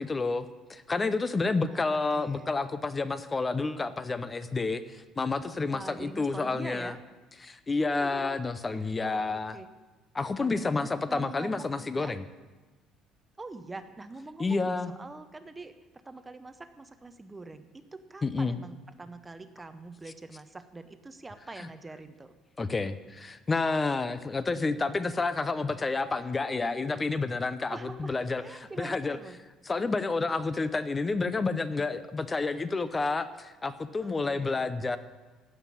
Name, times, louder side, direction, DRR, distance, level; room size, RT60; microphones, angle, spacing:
voice 1, 0.0-6.9 7.4-9.6 10.1-12.2 14.4-14.9 18.2-18.6 22.6-29.2 29.7-35.0, left 3 dB, 20° left, 13 dB, 0.6 m, -30 dB
voice 2, 1.7-2.5 5.6-7.0 7.9-8.4 8.7-9.7 10.4-11.7 11.9-12.2 13.4-15.7 16.0-22.3 27.7-28.2 28.4-29.4 34.0-34.7, right 3 dB, 15° right, 10 dB, 0.8 m, -44 dB
15.5 x 5.8 x 9.8 m, 1.2 s
cardioid pair, 140°, 0 cm